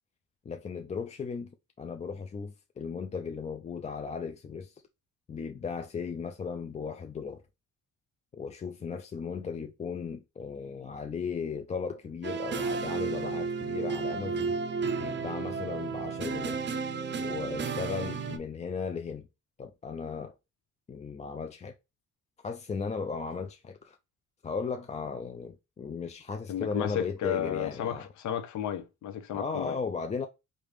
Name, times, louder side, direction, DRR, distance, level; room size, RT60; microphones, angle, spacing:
voice 1, 0.5-1.5 1.8-4.8 5.3-7.4 8.3-14.6 15.0-16.6 17.2-19.3 19.6-20.3 20.9-21.7 22.4-24.0 24.4-28.1 29.3-30.3, left 5 dB, 25° left, 0.4 m, -36 dB
sound 1, 12.2-18.4, right 5 dB, 40° right, 0.5 m, -32 dB
voice 2, 26.5-29.7, left 9 dB, 70° left, 0.6 m, -33 dB
3.3 x 2.6 x 3.2 m
cardioid pair, 90°, 30 cm